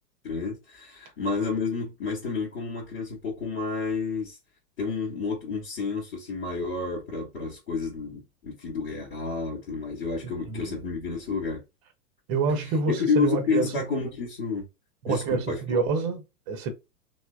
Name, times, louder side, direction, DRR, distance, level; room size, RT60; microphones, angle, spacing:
voice 1, 0.2-4.4 4.8-11.6 12.9-14.7 15.1-15.6, left 4 dB, 25° left, 0.9 m, -30 dB
voice 2, 10.2-10.8 12.3-13.9 15.0-16.7, right 4 dB, 25° right, 0.5 m, -27 dB
3.2 x 2.0 x 2.3 m
figure-of-eight pair, 100°, 50 cm